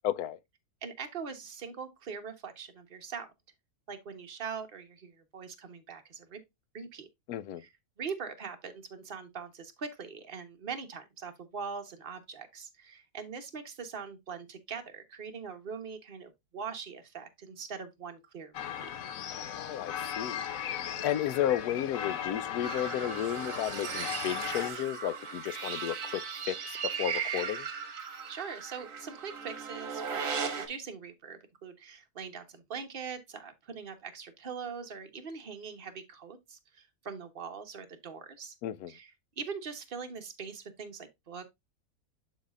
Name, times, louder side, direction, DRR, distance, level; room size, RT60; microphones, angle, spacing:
voice 1, 0.0-0.4 7.3-7.6 19.3-20.5 20.8-27.7 38.6-38.9, left 11 dB, 90° left, 1.1 m, -33 dB
voice 2, 0.8-3.3 3.9-6.4 6.7-7.1 7.6-7.7 8.0-18.9 28.3-38.5 38.9-39.1 39.4-41.5, right 5 dB, 40° right, 1.3 m, -42 dB
sound 1, 18.5-24.7, left 9 dB, 65° left, 1.1 m, -37 dB
sound 2, 22.6-30.7, right 6 dB, 60° right, 1.6 m, -37 dB
11.5 x 4.1 x 2.4 m
omnidirectional pair, 1.6 m